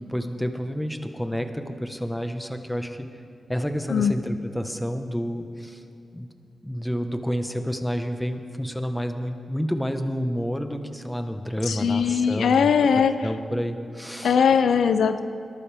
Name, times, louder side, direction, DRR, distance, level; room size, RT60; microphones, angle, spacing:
voice 1, 0.0-3.1 3.5-5.8 6.1-6.3 6.6-12.7 13.2-14.4, equal, 5° left, 6 dB, 1.3 m, -29 dB
voice 2, 11.7-13.2 14.2-15.2, left 6 dB, 85° left, 10 dB, 0.5 m, -20 dB
21.5 x 12.0 x 3.6 m, 2.7 s
cardioid pair, 50°, 0 cm